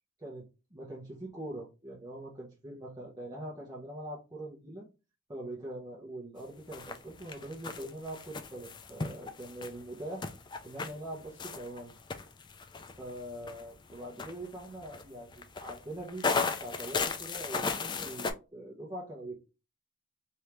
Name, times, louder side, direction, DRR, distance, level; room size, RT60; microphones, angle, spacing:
voice 1, 0.7-4.8 5.3-10.3 10.6-11.9 13.0-19.3, right 1 dB, 20° right, -6 dB, 0.8 m, -43 dB
sound 1, 6.7-18.3, left 4 dB, 20° left, 0.3 m, -36 dB
3.3 x 2.7 x 2.9 m, 0.30 s
head